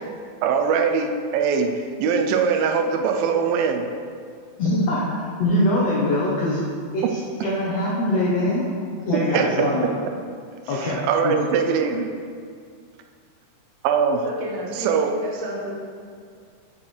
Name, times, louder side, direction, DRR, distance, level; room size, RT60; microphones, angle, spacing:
voice 1, 0.4-3.8 7.0-7.1 9.1-9.7 10.7-12.1 13.8-14.2 14.8-15.1, right 6 dB, 85° right, 5 dB, 2.3 m, -22 dB
voice 2, 4.6-6.6 6.9-8.7 9.1-9.9 10.7-11.3, left 1 dB, 75° left, -5 dB, 1.5 m, -23 dB
voice 3, 9.1-9.9 14.2-15.7, right 1 dB, 65° right, -3 dB, 2.2 m, -31 dB
7.3 x 6.4 x 4.3 m, 2.2 s
omnidirectional pair, 4.1 m